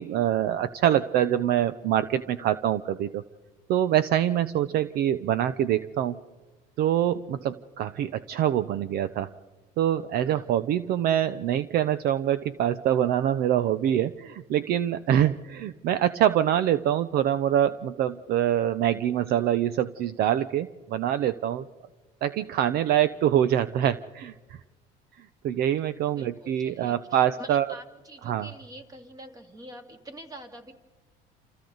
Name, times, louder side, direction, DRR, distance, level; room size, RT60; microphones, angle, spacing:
voice 1, 0.0-3.2 3.7-6.2 6.8-9.3 9.8-21.7 22.2-24.6 25.2-27.7 28.3-28.5, right 11 dB, 55° right, 14 dB, 0.7 m, -25 dB
voice 2, 10.1-10.6 26.1-30.7, right 1 dB, 20° right, 5 dB, 2.4 m, -46 dB
28.5 x 27.5 x 4.0 m, 1.2 s
cardioid pair, 130°, 20 cm